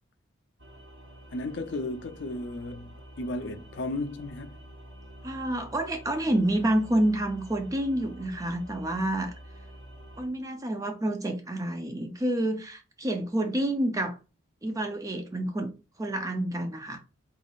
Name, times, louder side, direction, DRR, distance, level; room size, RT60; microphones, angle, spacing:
sound 1, 0.6-10.3, right 1 dB, 65° right, 1.2 m, -48 dB
voice 1, 1.3-2.9 3.2-4.6, left 2 dB, 60° left, 0.5 m, -34 dB
voice 2, 5.2-9.3 10.2-14.2 14.6-15.7 16.0-17.0, right 1 dB, 15° right, 0.4 m, -28 dB
4.0 x 3.8 x 2.4 m
head